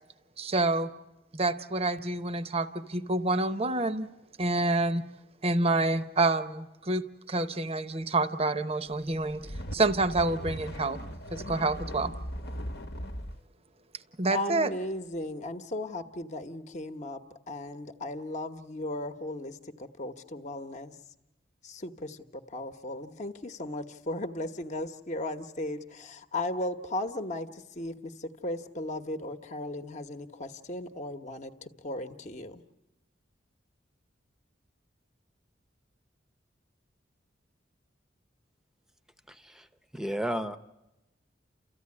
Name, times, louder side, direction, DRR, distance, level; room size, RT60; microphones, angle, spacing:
voice 1, 0.4-0.9 1.3-4.1 4.4-5.0 5.4-9.4 9.7-11.0 11.3-12.1 14.2-14.7, right 2 dB, 35° right, 12 dB, 0.8 m, -28 dB
sound 1, 9.1-13.4, equal, 60° left, 1.0 m, -39 dB
voice 2, 14.3-20.9 21.6-32.6, left 1 dB, 40° left, 7 dB, 1.1 m, -36 dB
voice 3, 39.3-39.7 39.9-40.6, equal, 5° right, 11 dB, 0.8 m, -33 dB
29.5 x 14.5 x 9.7 m, 0.98 s
head